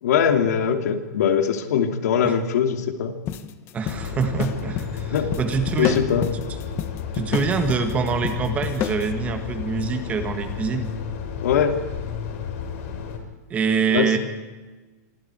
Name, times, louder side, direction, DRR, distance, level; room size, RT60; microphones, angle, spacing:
voice 1, 0.0-3.2 5.0-5.3 5.8-6.3 11.4-11.8 13.9-14.2, left 7 dB, 65° left, 5 dB, 2.9 m, -21 dB
sound 1, 3.3-9.1, left 11 dB, 25° left, 1.1 m, -31 dB
voice 2, 3.7-6.0 7.1-10.9 13.5-14.2, right 5 dB, 15° right, 6 dB, 1.9 m, -25 dB
sound 2, 3.9-13.2, left 7 dB, 50° left, 5.1 m, -32 dB
28.0 x 26.0 x 4.8 m, 1.2 s
supercardioid pair, 170°, 9 cm